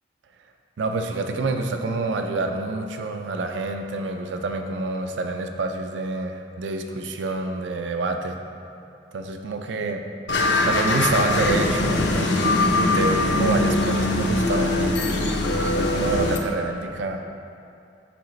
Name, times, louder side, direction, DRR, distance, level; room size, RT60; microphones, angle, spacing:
voice 1, 0.8-8.4 9.1-10.0 10.7-15.2 15.7-17.3, right 3 dB, 90° right, 5 dB, 0.4 m, -27 dB
sound 1, 10.3-16.4, left 2 dB, 70° left, 0.6 m, -22 dB
7.0 x 5.0 x 3.1 m, 2.5 s
head